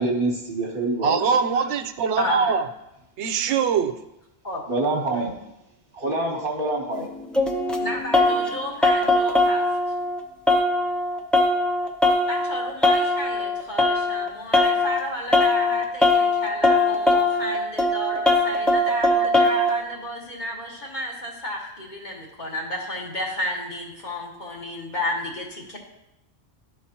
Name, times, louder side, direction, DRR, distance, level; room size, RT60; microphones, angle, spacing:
voice 1, 0.0-1.2 4.7-5.3 6.0-7.1, right 2 dB, 55° right, 1 dB, 1.4 m, -25 dB
voice 2, 1.0-2.7 3.2-4.0, right 6 dB, 85° right, 8 dB, 0.9 m, -22 dB
voice 3, 2.2-2.5 4.4-4.6 7.8-9.6 12.3-25.8, left 1 dB, 45° left, -2 dB, 1.5 m, -32 dB
sound 1, 6.9-8.5 8.8-10.2 10.5-14.3 14.5-15.0 15.3-19.7, left 2 dB, ahead, 0.4 m, -20 dB
12.5 x 4.7 x 2.9 m, 0.88 s
omnidirectional pair, 1.1 m